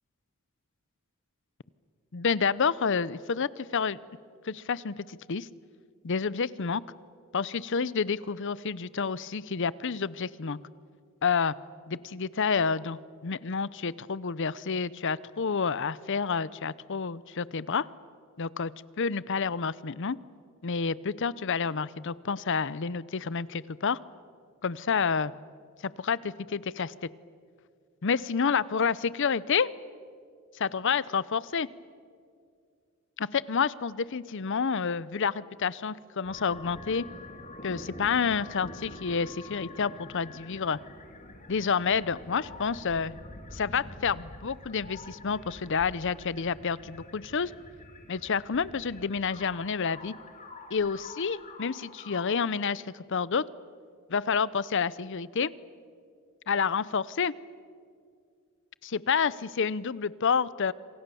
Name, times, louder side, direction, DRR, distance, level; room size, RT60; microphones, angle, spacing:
voice 1, 2.1-4.0 4.4-5.5 6.0-6.8 7.3-10.6 11.2-11.5 11.9-17.9 18.4-18.7 19.0-20.2 20.6-24.0 24.6-25.3 25.8-27.1 28.0-29.7 30.5-31.7 33.2-37.1 37.6-40.8 41.5-43.2 43.5-47.5 48.1-50.1 50.7-52.8 53.1-53.5 54.1-55.5 56.5-57.3 58.8-60.7, left 5 dB, 60° left, 19 dB, 0.7 m, -29 dB
sound 1, 36.2-52.3, left 2 dB, 35° left, 2.7 m, -46 dB
27.0 x 26.0 x 7.0 m, 2.2 s
head